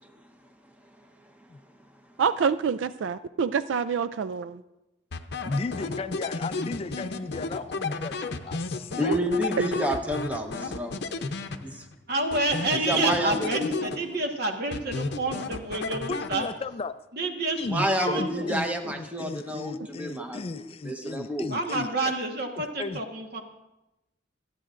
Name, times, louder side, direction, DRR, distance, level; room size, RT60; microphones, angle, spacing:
voice 1, 2.2-4.6 9.1-9.2, right 6 dB, 75° right, 14 dB, 0.3 m, -27 dB
sound 1, 5.1-12.0 12.3-14.3 14.7-16.8, left 3 dB, 60° left, 0.7 m, -34 dB
voice 2, 5.4-9.2 16.1-17.0 17.6-21.9 22.8-23.0, left 3 dB, 30° left, 12 dB, 0.3 m, -34 dB
voice 3, 9.0-10.9 12.8-13.7 17.7-21.5, equal, 10° right, 5 dB, 1.0 m, -29 dB
voice 4, 12.1-16.5 17.1-18.5 21.5-23.4, right 2 dB, 55° right, 3 dB, 1.4 m, -29 dB
25.5 x 9.1 x 2.5 m, 0.98 s
head